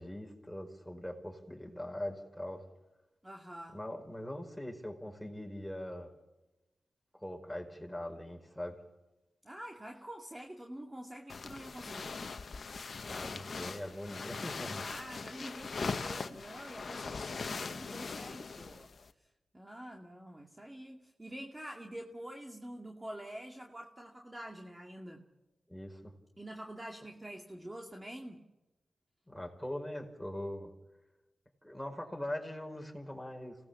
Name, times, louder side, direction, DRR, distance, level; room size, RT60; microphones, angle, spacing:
voice 1, 0.0-2.6 3.7-6.1 7.2-8.8 13.0-14.8 25.7-26.1 29.3-30.7 31.6-33.6, left 1 dB, 5° left, 3 dB, 5.1 m, -41 dB
voice 2, 3.2-3.8 9.4-12.4 14.8-18.9 19.5-25.2 26.4-28.4, right 1 dB, 20° right, 1 dB, 2.3 m, -46 dB
sound 1, 11.3-19.1, left 4 dB, 60° left, 1.2 m, -41 dB
26.5 x 18.5 x 7.2 m, 1.0 s
cardioid pair, 50°, 0 cm